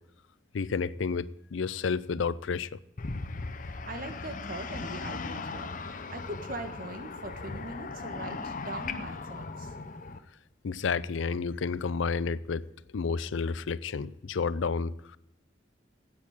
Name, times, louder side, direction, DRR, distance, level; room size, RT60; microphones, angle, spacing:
voice 1, 0.5-2.8 10.6-12.6 12.9-15.2, left 5 dB, 85° left, 0.5 m, -31 dB
sound 1, 3.0-10.2, left 3 dB, 45° left, 0.7 m, -38 dB
voice 2, 3.6-9.7, right 1 dB, 50° right, 1.5 m, -41 dB
9.5 x 8.4 x 8.7 m
head